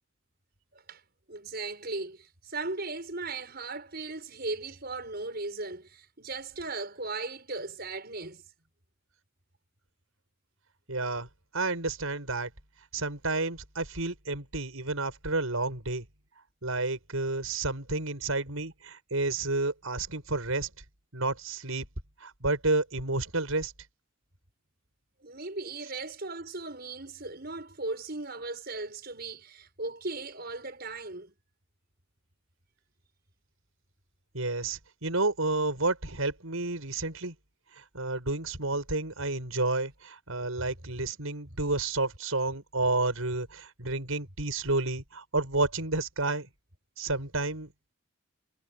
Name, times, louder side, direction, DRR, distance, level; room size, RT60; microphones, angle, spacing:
voice 1, 1.3-8.4 25.2-31.3 40.9-41.0, right 3 dB, 50° right, 6.8 m, -37 dB
voice 2, 10.9-11.3 11.5-12.5 12.9-16.0 16.6-20.7 21.1-21.9 22.2-23.7 34.3-37.3 37.9-46.5 47.0-47.7, right 2 dB, 90° right, 6.4 m, -30 dB
head